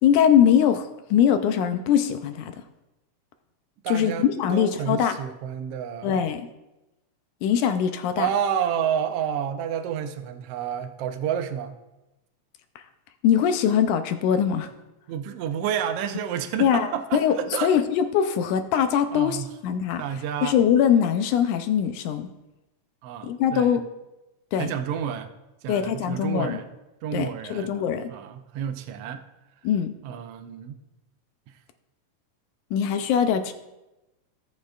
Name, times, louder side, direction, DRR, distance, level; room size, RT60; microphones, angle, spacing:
voice 1, 0.0-2.6 3.9-5.2 6.0-6.5 7.4-8.3 13.2-14.7 16.6-17.3 17.6-20.0 20.4-22.3 23.2-23.9 24.5-24.7 25.7-26.6 27.1-28.1 29.6-29.9 32.7-33.5, left 8 dB, 80° left, 8 dB, 2.0 m, -22 dB
voice 2, 3.8-6.2 8.2-11.8 15.1-17.7 19.1-19.5 20.0-20.6 23.0-23.8 24.6-25.3 25.6-26.7 27.0-27.7 28.1-29.2 30.0-30.8 31.5-31.6, right 8 dB, 85° right, 6 dB, 1.3 m, -30 dB
18.5 x 6.5 x 2.4 m, 0.99 s
omnidirectional pair, 3.6 m